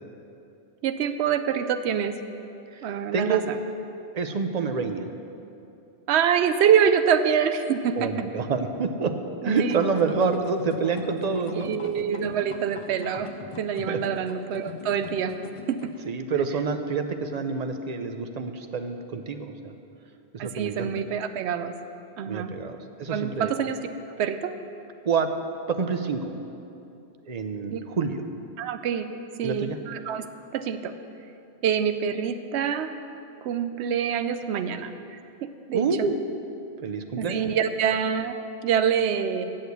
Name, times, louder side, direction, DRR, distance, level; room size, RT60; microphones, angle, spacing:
voice 1, 0.8-2.1 2.8-3.4 6.1-8.1 9.4-9.8 11.6-13.3 13.6-15.4 15.7-15.8 20.4-21.7 22.2-22.5 23.1-23.8 24.1-24.5 27.7-27.8 28.6-29.1 29.4-30.2 30.5-30.9 31.6-32.9 33.4-35.9 37.2-38.4 38.6-39.4, right 8 dB, 80° right, 10 dB, 0.9 m, -25 dB
voice 2, 2.7-3.4 4.1-5.1 7.9-9.1 9.4-11.7 13.9-14.0 16.0-19.7 20.3-20.9 22.3-23.5 25.0-25.3 25.7-26.2 27.3-28.2 29.4-29.8 35.7-36.1 36.8-37.4, right 5 dB, 45° right, 7 dB, 0.7 m, -27 dB
sound 1, 9.5-16.0, left 6 dB, 55° left, 0.3 m, -41 dB
9.4 x 6.6 x 8.2 m, 2.7 s
omnidirectional pair, 1.1 m